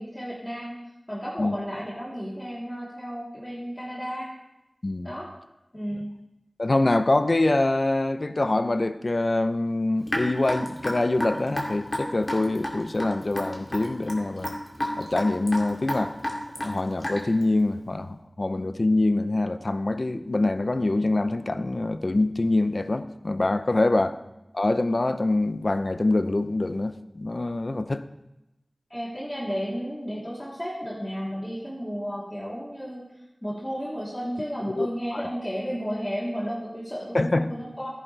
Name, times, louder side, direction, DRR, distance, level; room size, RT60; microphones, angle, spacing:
voice 1, 0.0-4.3 5.0-5.3 5.7-6.1 23.8-24.0 28.9-33.0 33.4-37.9, equal, 20° left, -7 dB, 3.4 m, -33 dB
voice 2, 6.6-14.5 15.0-16.2 16.6-24.2 24.5-28.0 34.7-34.9 35.1-35.2 37.1-37.5, left 2 dB, 60° left, 11 dB, 0.6 m, -25 dB
Raindrop / Drip, 10.1-17.4, left 1 dB, 40° left, 2.6 m, -31 dB
14.0 x 10.5 x 3.4 m, 0.95 s
wide cardioid pair, 45°, 0 cm